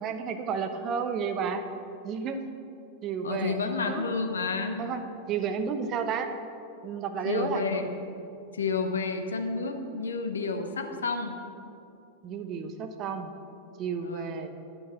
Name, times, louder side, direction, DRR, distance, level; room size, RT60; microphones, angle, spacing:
voice 1, 0.0-1.7 2.0-2.6 3.0-4.1 4.8-6.3 6.8-7.8 12.2-13.3 13.8-14.6, right 6 dB, 35° right, 8 dB, 0.8 m, -32 dB
voice 2, 3.2-4.8 7.2-7.9 8.5-11.4 14.0-14.4, left 4 dB, 70° left, 5 dB, 0.9 m, -30 dB
11.0 x 6.0 x 6.6 m, 2.7 s
figure-of-eight pair, 90°, 0 cm